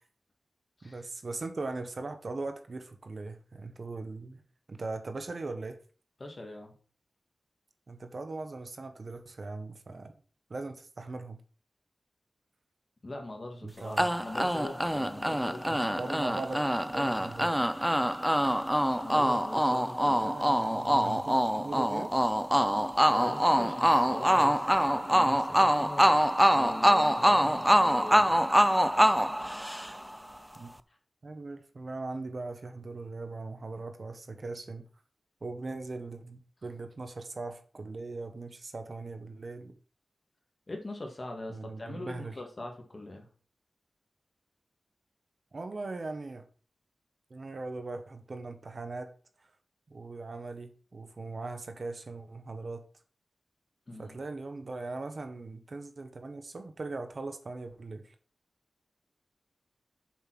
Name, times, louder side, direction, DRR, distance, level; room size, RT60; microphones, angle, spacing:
voice 1, 0.8-4.4 4.7-5.8 7.9-10.1 10.5-11.4 13.6-14.1 15.7-16.6 16.9-17.5 20.2-22.1 30.6-30.7 31.2-34.8 35.4-39.7 41.5-42.4 45.5-46.4 47.3-49.1 49.9-52.8 54.0-58.1, right 3 dB, 50° right, 7 dB, 1.2 m, -39 dB
voice 2, 6.2-6.7 13.0-16.4 19.0-20.4 23.0-26.2 26.5-28.4 40.7-43.3 53.9-54.2, left 2 dB, 35° left, 3 dB, 2.1 m, -42 dB
sound 1, 14.0-30.2, equal, 5° right, 0.5 m, -25 dB
7.3 x 5.5 x 6.1 m, 0.41 s
wide cardioid pair, 105°, 0 cm